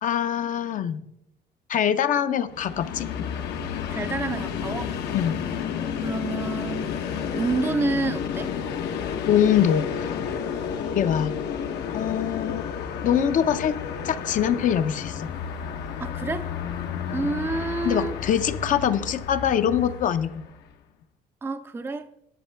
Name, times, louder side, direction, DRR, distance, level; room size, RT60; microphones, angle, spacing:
voice 1, 0.0-1.0 1.7-3.1 5.1-5.4 9.3-9.8 11.0-11.3 11.9-12.7 13.0-13.8 14.0-15.3 17.8-20.3, left 9 dB, 50° left, 0.6 m, -23 dB
Train, 2.5-20.6, left 7 dB, 80° left, 1.0 m, -31 dB
voice 2, 3.9-4.9 6.0-6.9 7.3-8.5 16.0-16.5 17.1-18.2 21.4-22.1, right 3 dB, 15° right, 0.4 m, -29 dB
10.0 x 7.9 x 3.4 m
cardioid pair, 110°, 17 cm